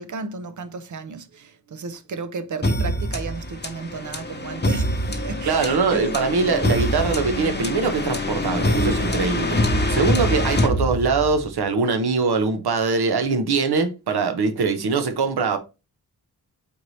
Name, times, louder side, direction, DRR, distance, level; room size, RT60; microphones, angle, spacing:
voice 1, 0.0-6.2, right 5 dB, 50° right, 0.5 m, -33 dB
sound 1, 2.6-11.5, left 1 dB, 25° left, 0.9 m, -24 dB
voice 2, 5.5-9.6 9.9-15.6, right 4 dB, 75° right, 0.8 m, -22 dB
4.5 x 2.7 x 3.1 m
wide cardioid pair, 70°, 39 cm